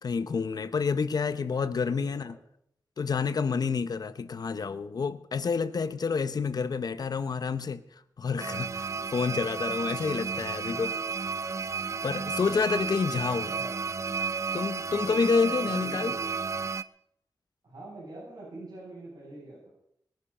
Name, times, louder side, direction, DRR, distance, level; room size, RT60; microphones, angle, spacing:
voice 1, 0.0-2.4 3.0-7.8 8.2-10.9 12.0-13.5 14.5-16.1, left 5 dB, 60° left, 0.9 m, -29 dB
voice 2, 1.9-2.3 10.3-10.8 13.5-13.8 15.6-16.2 17.6-19.7, right 2 dB, 60° right, 7.9 m, -45 dB
sound 1, 8.4-16.8, right 5 dB, 40° right, 0.5 m, -32 dB
21.0 x 10.5 x 5.7 m
wide cardioid pair, 130°, 8 cm